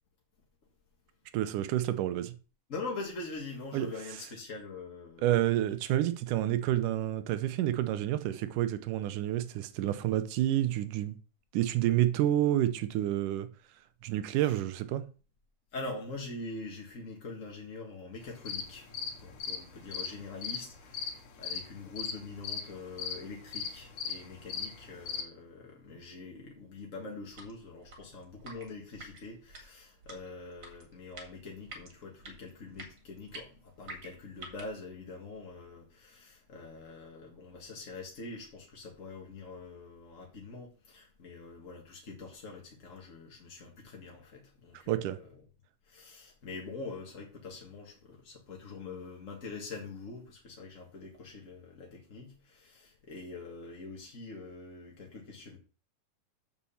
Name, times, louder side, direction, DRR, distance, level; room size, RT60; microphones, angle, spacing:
voice 1, 1.3-2.3 3.7-3.9 5.2-11.1 11.5-13.5 14.0-15.0 44.9-45.2, right 13 dB, 85° right, 2.4 m, -29 dB
voice 2, 2.7-5.5 14.3-14.6 15.7-45.4 45.8-55.6, left 3 dB, 35° left, 1.3 m, -44 dB
sound 1, 18.2-25.2, left 6 dB, 75° left, 3.0 m, -38 dB
sound 2, 27.2-34.8, right 2 dB, 40° right, 2.5 m, -50 dB
7.1 x 6.0 x 7.1 m
omnidirectional pair, 3.6 m